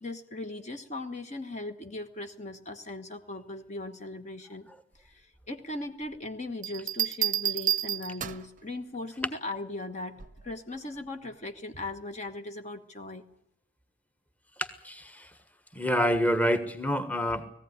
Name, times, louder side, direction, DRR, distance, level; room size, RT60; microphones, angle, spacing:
voice 1, 0.0-4.7 4.9-13.2, left 2 dB, 35° left, 6 dB, 1.2 m, -38 dB
sound 1, 6.6-8.6 10.2-10.5, right 12 dB, 35° right, 0.7 m, -30 dB
voice 2, 14.6-15.3 15.7-17.5, equal, 5° left, 8 dB, 1.4 m, -27 dB
20.0 x 15.5 x 9.6 m, 0.78 s
head